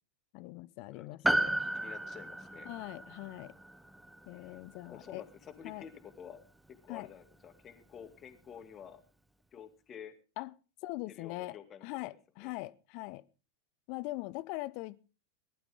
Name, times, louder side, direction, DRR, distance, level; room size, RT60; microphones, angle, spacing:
voice 1, 0.3-1.6 2.7-3.5 4.3-5.2 5.6-5.9 6.9-7.1 10.4-10.5 10.8-13.2 13.9-15.1, left 20 dB, 45° left, 0.7 m, -42 dB
voice 2, 0.9-2.7 4.3-4.6 4.8-6.4 6.7-9.0 9.5-10.1 11.1-12.5, left 8 dB, 25° left, 2.3 m, -51 dB
Piano, 1.2-5.9 6.1-6.2, right 1 dB, 5° right, 0.9 m, -35 dB
19.0 x 12.0 x 3.7 m
figure-of-eight pair, 90°, 0 cm